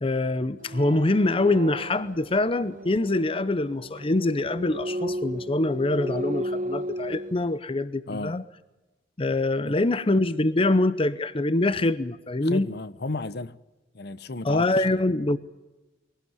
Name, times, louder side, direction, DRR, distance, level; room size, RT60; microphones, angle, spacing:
voice 1, 0.0-8.4 9.2-12.7 14.4-15.4, left 2 dB, 30° left, 0.7 m, -24 dB
sound 1, 0.6-7.6, equal, 45° right, 1.1 m, -35 dB
voice 2, 8.1-8.4 9.6-9.8 12.4-13.6 13.9-15.0, left 3 dB, 60° left, 0.9 m, -34 dB
22.5 x 17.5 x 9.5 m
head